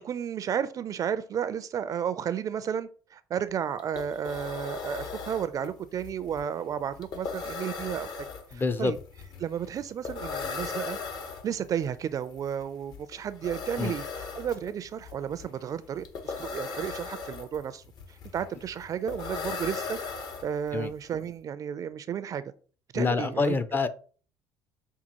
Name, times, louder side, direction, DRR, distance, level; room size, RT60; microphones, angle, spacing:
voice 1, 0.0-8.3 8.5-9.0 9.4-11.0 11.4-14.0 14.3-17.8 18.3-20.0 20.4-22.4 22.9-23.6, right 8 dB, 45° right, 0.4 m, -32 dB
sound 1, 3.5-3.6 3.8-20.9, left 4 dB, 55° left, 0.9 m, -38 dB
voice 2, 8.5-8.9 13.8-13.9 20.7-20.9 22.9-23.9, left 4 dB, 25° left, 0.4 m, -26 dB
5.4 x 2.3 x 2.9 m
supercardioid pair, 80°, 8 cm